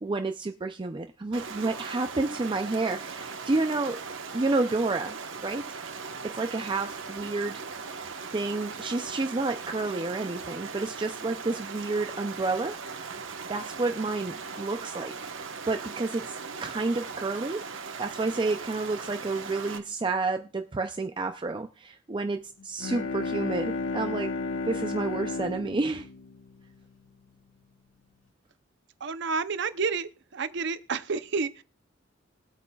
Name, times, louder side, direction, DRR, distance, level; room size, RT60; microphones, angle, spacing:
voice 1, 0.0-4.0 4.3-5.2 5.4-5.7 6.2-7.6 8.3-12.8 13.5-15.1 15.7-17.6 18.0-24.3 24.7-26.1, right 3 dB, 25° right, 0.5 m, -30 dB
Stream, 1.3-19.8, right 5 dB, 80° right, 1.2 m, -39 dB
Bowed string instrument, 22.6-27.3, left 3 dB, 80° left, 1.1 m, -33 dB
voice 2, 29.0-31.6, right 5 dB, 65° right, 0.7 m, -30 dB
21.0 x 8.5 x 2.3 m
head